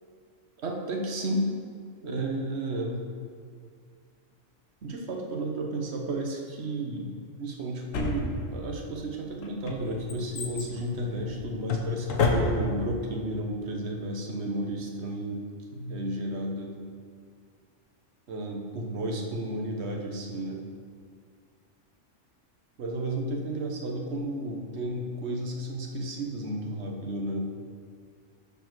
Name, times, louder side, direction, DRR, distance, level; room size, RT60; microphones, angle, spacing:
voice 1, 0.6-1.5 2.0-3.0 4.8-7.1 7.4-15.4 15.7-16.8 18.3-20.6 22.8-27.5, right 1 dB, 60° right, 1 dB, 1.3 m, -32 dB
Drawer open or close, 7.9-8.8 9.4-12.9 13.2-13.3, left 4 dB, 85° left, 1.4 m, -29 dB
10.5 x 4.7 x 6.1 m, 2.1 s
omnidirectional pair, 1.3 m